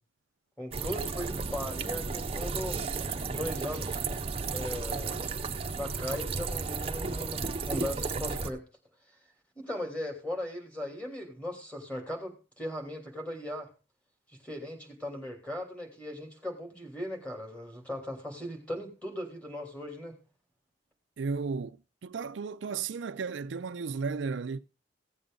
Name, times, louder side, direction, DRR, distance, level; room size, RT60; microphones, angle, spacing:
voice 1, 0.6-2.8 3.3-4.0 4.5-5.2 5.7-8.6 9.6-13.7 14.4-20.1, left 1 dB, 10° left, 2.8 m, -38 dB
sound 1, 0.7-8.5, right 4 dB, 30° right, 0.7 m, -33 dB
voice 2, 21.2-21.8 22.0-24.6, right 5 dB, 80° right, 0.4 m, -34 dB
16.0 x 8.0 x 3.8 m
head